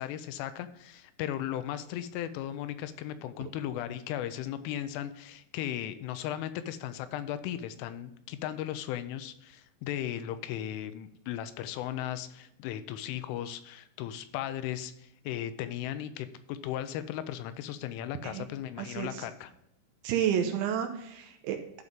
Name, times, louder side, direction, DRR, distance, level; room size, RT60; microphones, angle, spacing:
voice 1, 0.0-19.5, left 11 dB, 85° left, 11 dB, 3.0 m, -36 dB
voice 2, 18.8-19.2 20.0-21.8, right 9 dB, 80° right, 6 dB, 2.9 m, -31 dB
12.0 x 4.1 x 5.1 m, 0.82 s
omnidirectional pair, 5.7 m